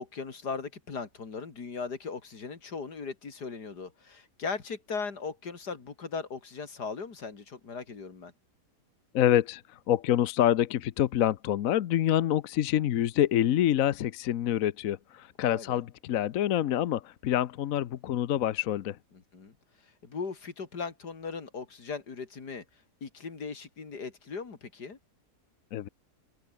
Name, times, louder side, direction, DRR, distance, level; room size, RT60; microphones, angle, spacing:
voice 1, 0.0-8.3 15.4-15.8 19.1-19.5 19.8-22.6 23.0-25.0, left 5 dB, 85° left, 3.2 m, -38 dB
voice 2, 9.1-19.0 25.7-25.9, left 11 dB, 65° left, 1.1 m, -26 dB
omnidirectional pair, 1.7 m